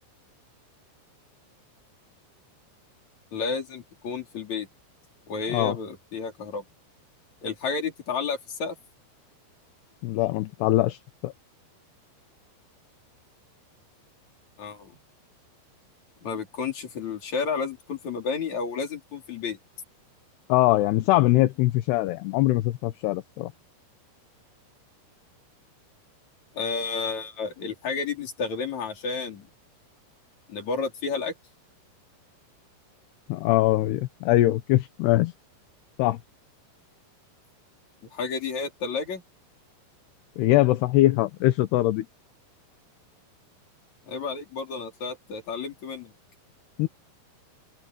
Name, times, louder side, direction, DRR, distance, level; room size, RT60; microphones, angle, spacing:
voice 1, 3.3-4.7 5.3-6.6 7.4-8.7 14.6-15.0 16.2-19.6 26.5-29.5 30.5-31.3 38.1-39.2 44.0-46.1, left 5 dB, 40° left, 4.9 m, -31 dB
voice 2, 10.0-11.3 20.5-23.5 33.3-35.3 36.0-36.2 40.4-42.1 46.8-46.9, left 16 dB, 75° left, 2.7 m, -22 dB
open air
omnidirectional pair, 5.4 m